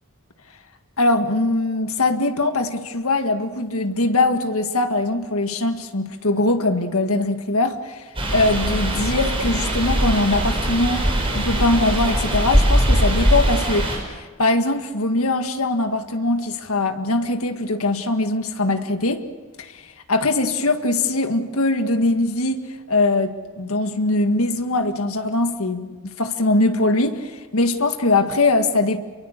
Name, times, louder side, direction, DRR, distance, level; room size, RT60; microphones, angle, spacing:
voice 1, 1.0-8.0 8.3-19.2 19.6-19.8 20.1-22.6 22.9-29.0, left 2 dB, 75° left, 6 dB, 1.8 m, -21 dB
sound 1, 8.2-14.0, equal, 25° right, 6.0 m, -21 dB
28.0 x 23.5 x 6.6 m, 1.3 s
head